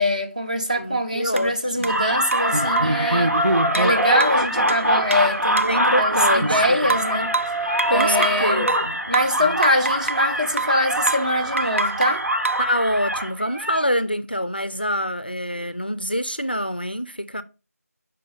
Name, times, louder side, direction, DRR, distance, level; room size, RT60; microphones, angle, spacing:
voice 1, 0.0-3.3 3.7-7.3 7.9-8.7 9.1-12.2, equal, 25° right, 0.8 m, -23 dB
voice 2, 0.8-2.0 5.7-6.9 7.9-8.9 9.4-9.6 12.6-17.4, equal, 35° left, 0.4 m, -26 dB
sound 1, 1.4-1.5 1.8-2.0 2.3-3.1 3.7-5.8 6.9-8.4 8.7-10.3 10.6-10.8 11.1-11.3 11.6-12.7, right 3 dB, 55° right, 0.4 m, -27 dB
sound 2, 1.9-13.9, equal, 75° right, 1.4 m, -23 dB
5.4 x 5.2 x 5.3 m
figure-of-eight pair, 180°, 9 cm